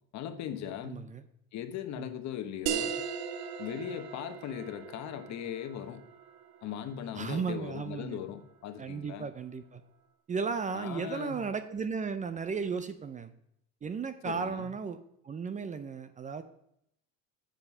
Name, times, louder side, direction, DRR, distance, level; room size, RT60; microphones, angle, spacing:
voice 1, 0.1-1.0 1.5-3.0 3.6-6.0 6.6-9.3 10.7-11.4 14.2-14.7, left 10 dB, 55° left, 9 dB, 1.1 m, -39 dB
voice 2, 0.8-1.2 2.0-2.1 7.2-8.2 8.8-9.8 10.3-13.3 13.8-15.0 15.2-16.4, right 5 dB, 25° right, 11 dB, 0.5 m, -35 dB
sound 1, 2.7-7.7, right 8 dB, 80° right, 0.9 m, -38 dB
7.8 x 7.2 x 5.5 m, 0.74 s
cardioid pair, 120°, 33 cm